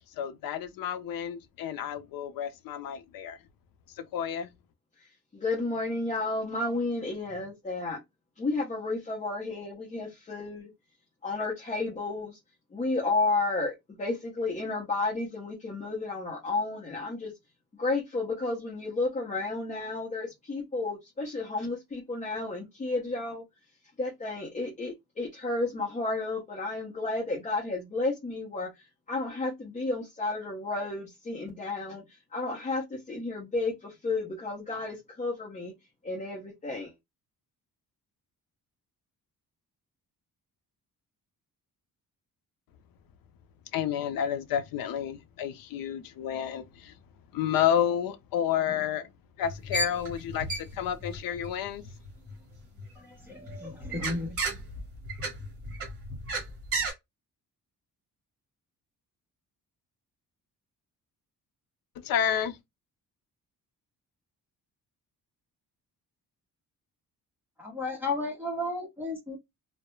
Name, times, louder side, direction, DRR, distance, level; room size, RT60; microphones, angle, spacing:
voice 1, 0.1-3.4 4.0-4.5 43.7-46.9 47.3-49.1 49.4-51.9 62.0-62.6, left 9 dB, 75° left, 0.5 m, -30 dB
voice 2, 5.3-8.0 8.4-10.7 11.2-12.4 12.7-17.3 17.8-23.4 24.0-35.7 36.0-36.9, left 3 dB, 20° left, 0.6 m, -32 dB
sound 1, 49.4-52.9 53.3-56.9, right 3 dB, 40° right, 1.1 m, -34 dB
voice 3, 53.0-54.3 67.6-69.4, left 2 dB, 5° right, 0.9 m, -34 dB
2.2 x 2.0 x 3.0 m
wide cardioid pair, 180°, 35 cm